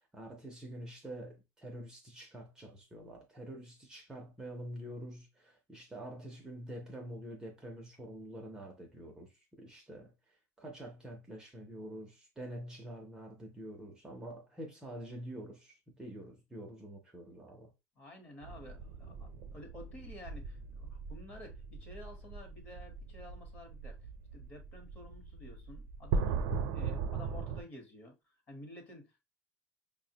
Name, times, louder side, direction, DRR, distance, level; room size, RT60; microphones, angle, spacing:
voice 1, 0.0-17.7, right 1 dB, 10° right, 0.5 m, -47 dB
voice 2, 18.0-26.4 26.7-29.2, left 1 dB, 30° left, 0.9 m, -52 dB
sound 1, 18.4-27.6, right 5 dB, 75° right, 0.5 m, -38 dB
5.2 x 2.1 x 2.7 m
cardioid pair, 175°, 6 cm